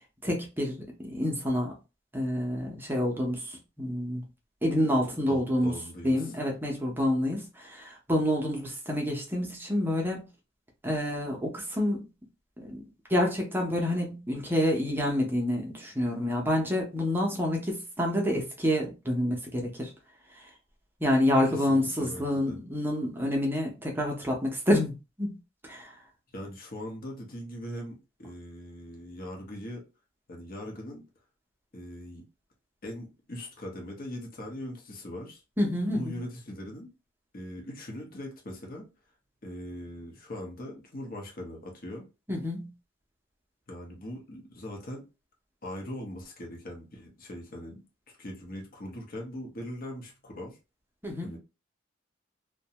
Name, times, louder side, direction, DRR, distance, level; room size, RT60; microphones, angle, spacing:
voice 1, 0.2-1.8 2.1-4.2 4.6-5.7 6.0-10.2 10.8-12.1 12.6-12.8 13.1-19.9 20.4-20.5 21.0-24.9 25.2-25.3 25.6-26.0 35.6-36.1 42.3-42.7 51.0-51.4, left 1 dB, 10° right, 0.6 m, -28 dB
voice 2, 5.3-6.3 21.5-22.6 26.3-29.8 30.3-31.0 31.7-32.2 32.8-35.4 35.8-36.9 37.3-38.9 39.4-42.1 43.7-45.1 45.6-47.8 48.2-50.6 51.2-51.4, left 1 dB, 50° left, 0.8 m, -40 dB
2.5 x 2.2 x 2.8 m
head